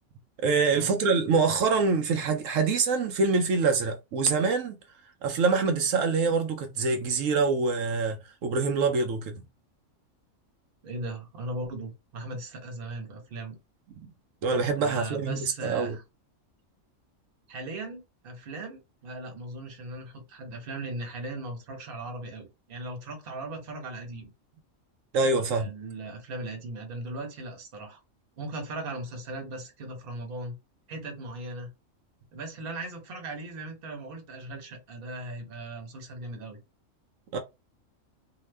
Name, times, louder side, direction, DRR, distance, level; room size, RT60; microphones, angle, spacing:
voice 1, 0.4-4.8 5.2-9.3 14.4-16.0 25.1-25.7 37.3-37.4, right 4 dB, 80° right, 0.9 m, -25 dB
voice 2, 10.8-13.6 14.8-16.0 17.5-24.3 25.4-28.0 28.4-30.6 30.9-31.7 32.3-36.6, right 2 dB, 50° right, 1.0 m, -38 dB
2.8 x 2.2 x 3.2 m
omnidirectional pair, 1.3 m